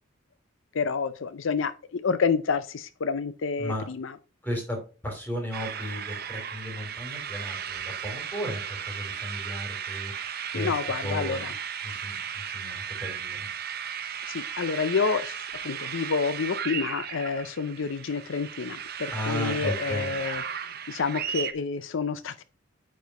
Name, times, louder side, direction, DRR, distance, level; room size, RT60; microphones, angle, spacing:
voice 1, 0.7-4.2 10.5-11.5 14.3-20.4 20.9-22.4, left 5 dB, 70° left, 12 dB, 0.5 m, -29 dB
voice 2, 4.4-4.8 5.0-8.6 8.9-10.1 10.5-10.7 11.0-11.5 11.8-12.2 12.5-13.5 19.1-20.2, equal, 10° left, 1 dB, 3.1 m, -34 dB
sound 1, 5.5-21.5, right 8 dB, 50° right, 0.8 m, -35 dB
9.4 x 4.4 x 4.7 m, 0.35 s
head